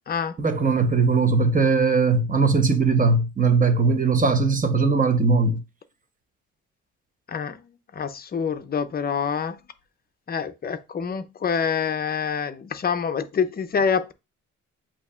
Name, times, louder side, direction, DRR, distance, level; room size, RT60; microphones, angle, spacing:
voice 1, 0.4-5.6, right 4 dB, 25° right, 0.8 m, -20 dB
voice 2, 8.0-9.6 10.3-14.1, left 6 dB, 30° left, 0.5 m, -26 dB
7.8 x 2.8 x 2.4 m
cardioid pair, 90°, 30 cm